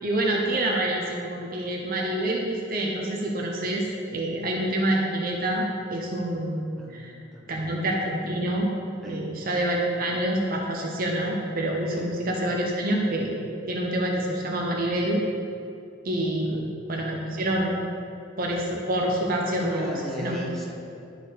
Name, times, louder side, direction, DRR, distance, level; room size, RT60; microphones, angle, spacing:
voice 1, 0.0-3.9 4.1-6.6 6.9-7.1 7.5-8.7 9.1-15.2 16.0-17.8 18.4-20.4, right 1 dB, 45° right, -1 dB, 0.9 m, -27 dB
voice 2, 6.8-7.8 9.0-9.2 11.9-12.1 16.5-17.0 19.6-20.7, equal, ahead, -5 dB, 1.3 m, -38 dB
12.0 x 4.3 x 4.2 m, 2.5 s
head